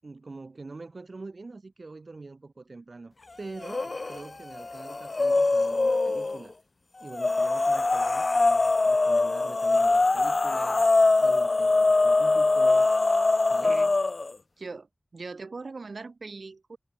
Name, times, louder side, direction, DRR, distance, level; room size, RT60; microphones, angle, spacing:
voice 1, 0.0-6.6 7.0-12.9 13.5-13.8, right 3 dB, 65° right, 7.6 m, -44 dB
sound 1, 3.6-4.2 4.5-6.4 7.1-14.3, left 3 dB, 60° left, 0.3 m, -23 dB
voice 2, 14.6-14.9 15.1-16.8, right 3 dB, 85° right, 2.1 m, -40 dB
wide cardioid pair, 75°, 0 cm